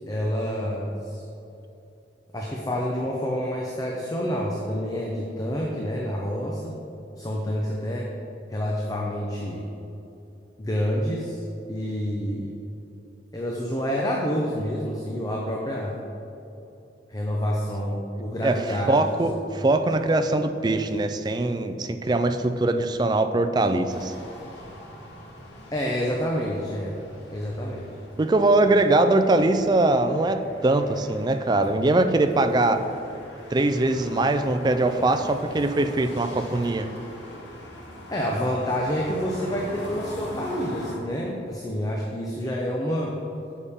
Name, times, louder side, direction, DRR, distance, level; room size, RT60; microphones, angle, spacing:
voice 1, 0.1-1.2 2.3-6.8 7.2-8.1 8.5-9.7 10.6-11.4 11.7-12.5 13.3-16.0 17.1-19.0 25.7-26.9 27.3-27.9 38.1-43.2, equal, 20° left, -2 dB, 0.7 m, -28 dB
voice 2, 18.4-24.1 28.2-32.9 33.5-36.9, right 2 dB, 25° right, 8 dB, 0.3 m, -22 dB
sound 1, 23.9-41.0, left 1 dB, 90° left, 1.6 m, -42 dB
8.5 x 7.0 x 3.6 m, 2.9 s
head